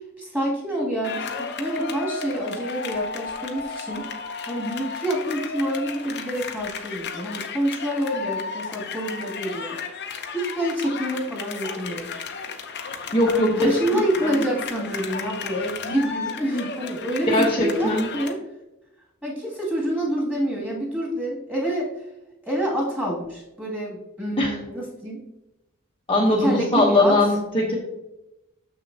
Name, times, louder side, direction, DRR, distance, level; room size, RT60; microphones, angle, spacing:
voice 1, 0.2-4.0 4.5-9.8 10.3-12.1 13.3-18.4 19.2-21.9 22.4-25.2 26.3-27.2, right 1 dB, 5° right, -4 dB, 2.4 m, -27 dB
sound 1, 1.0-18.3, left 5 dB, 50° left, 0.8 m, -34 dB
voice 2, 13.1-13.5 13.9-14.3 17.3-18.1 24.4-24.5 26.1-27.7, left 1 dB, 25° left, -3 dB, 1.0 m, -20 dB
6.8 x 6.3 x 2.8 m, 0.92 s
head